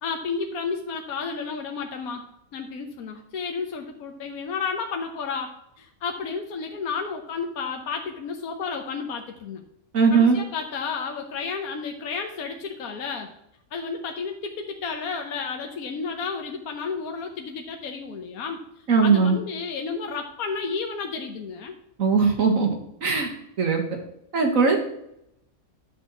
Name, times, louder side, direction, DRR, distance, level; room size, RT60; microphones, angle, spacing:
voice 1, 0.0-2.2 2.5-9.6 10.1-13.3 13.7-18.6 19.0-21.7, left 5 dB, 80° left, 4 dB, 1.4 m, -32 dB
voice 2, 9.9-10.4 18.9-19.4 22.0-22.7 23.0-23.3 23.6-23.8 24.3-24.8, right 5 dB, 70° right, 2 dB, 1.9 m, -19 dB
10.5 x 4.1 x 7.1 m, 0.78 s
omnidirectional pair, 1.5 m